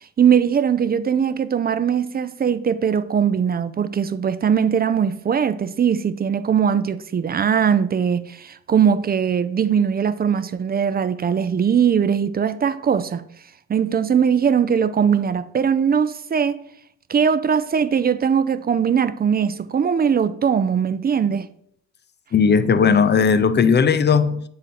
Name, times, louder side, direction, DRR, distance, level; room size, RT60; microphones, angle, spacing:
voice 1, 0.2-13.2 13.7-16.6 17.1-21.5, right 7 dB, 30° right, 0.5 m, -20 dB
voice 2, 22.3-24.4, left 6 dB, 35° left, 0.6 m, -16 dB
7.9 x 3.9 x 5.8 m
cardioid pair, 90°, 30 cm